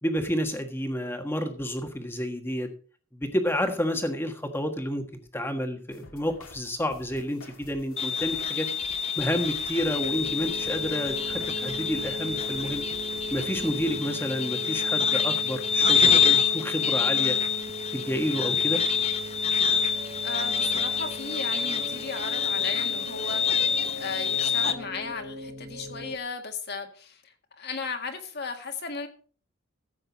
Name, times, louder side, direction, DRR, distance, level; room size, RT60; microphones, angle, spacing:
voice 1, 0.0-2.7 3.1-5.0 5.3-8.7 9.2-12.8 13.3-17.4 17.9-18.8, equal, 10° left, 5 dB, 1.5 m, -30 dB
sound 1, 5.9-13.9, left 2 dB, 75° left, 2.1 m, -49 dB
sound 2, 8.0-24.7, left 7 dB, 30° left, 0.7 m, -27 dB
sound 3, 9.8-26.2, equal, 35° right, 0.8 m, -39 dB
voice 2, 20.2-29.1, left 4 dB, 50° left, 5 dB, 1.8 m, -36 dB
15.0 x 7.9 x 4.1 m, 0.41 s
head